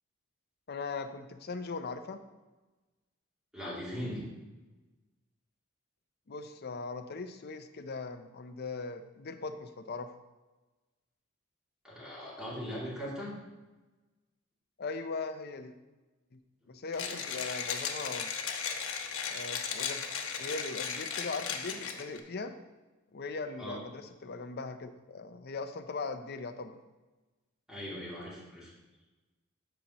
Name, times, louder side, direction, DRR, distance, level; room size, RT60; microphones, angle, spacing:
voice 1, 0.7-2.2 6.3-10.1 14.8-15.7 16.3-16.4 16.7-18.3 19.3-20.0 20.4-22.5 23.1-26.8, left 4 dB, 50° left, 8 dB, 0.6 m, -39 dB
voice 2, 3.5-4.2 11.8-13.3 17.0-17.1 23.6-23.8 27.7-28.7, equal, 5° right, -8 dB, 2.6 m, -39 dB
Mechanisms, 16.9-22.2, left 6 dB, 85° left, 0.9 m, -36 dB
13.5 x 5.4 x 2.9 m, 1.2 s
head